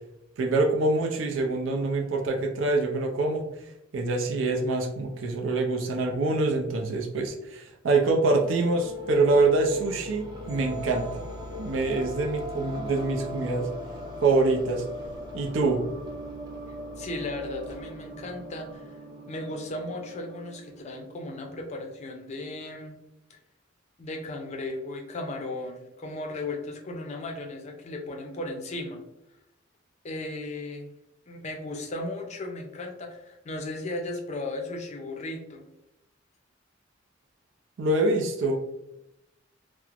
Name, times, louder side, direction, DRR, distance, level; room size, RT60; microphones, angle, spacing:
voice 1, 0.4-3.5 3.9-11.2 11.6-13.7 14.2-14.9 15.3-15.8 37.8-38.6, right 3 dB, 80° right, 2 dB, 0.4 m, -25 dB
sound 1, 8.3-21.2, equal, 20° right, 0.5 m, -39 dB
voice 2, 17.0-19.0 19.3-23.0 23.3-23.4 24.0-29.0 30.0-30.9 31.3-35.6, left 2 dB, 35° left, 2 dB, 0.4 m, -36 dB
3.0 x 2.0 x 2.4 m, 0.87 s
head